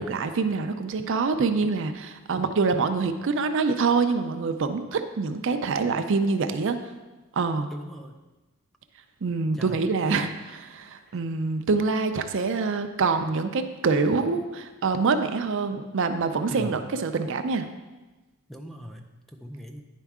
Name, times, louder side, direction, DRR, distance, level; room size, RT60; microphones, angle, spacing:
voice 1, 0.0-6.8 7.4-7.7 9.2-17.7, right 4 dB, 55° right, 8 dB, 0.4 m, -25 dB
voice 2, 7.7-8.2 9.5-9.8 11.1-11.2 16.5-16.9 18.5-19.8, equal, ahead, 3 dB, 0.4 m, -39 dB
10.0 x 4.5 x 3.5 m, 1.2 s
head